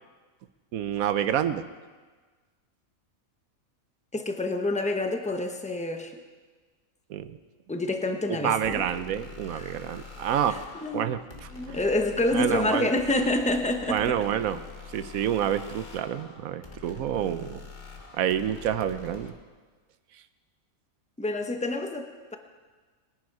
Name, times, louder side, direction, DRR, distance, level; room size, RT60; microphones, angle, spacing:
voice 1, 0.7-1.6 7.1-7.4 8.3-10.6 10.9-11.2 11.7-11.8 12.3-12.9 13.9-14.6 14.9-17.6 18.1-19.3, right 10 dB, 80° right, 12 dB, 1.1 m, -28 dB
voice 2, 4.1-6.1 7.7-8.9 9.5-9.8 10.5-11.1 11.5-14.1 21.2-22.4, left 2 dB, 5° left, 5 dB, 0.9 m, -28 dB
sound 1, 8.6-19.3, left 4 dB, 35° left, 1.6 m, -45 dB
21.0 x 10.5 x 4.8 m, 1.4 s
omnidirectional pair, 1.5 m